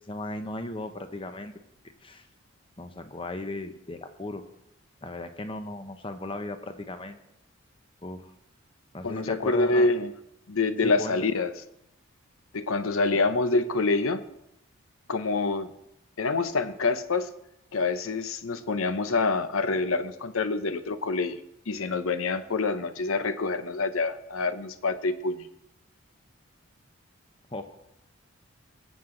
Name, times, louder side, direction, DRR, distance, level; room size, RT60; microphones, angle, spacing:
voice 1, 0.1-1.5 2.0-2.3 2.8-4.4 5.0-7.2 8.0-8.2 8.9-9.9 10.8-11.2 27.5-27.6, left 2 dB, 25° left, 8 dB, 0.8 m, -36 dB
voice 2, 9.0-10.1 10.5-11.5 12.5-14.2 15.1-15.7 16.2-17.3 17.7-21.4 21.7-25.5, left 3 dB, 75° left, 12 dB, 0.8 m, -26 dB
19.5 x 7.8 x 3.8 m, 0.82 s
head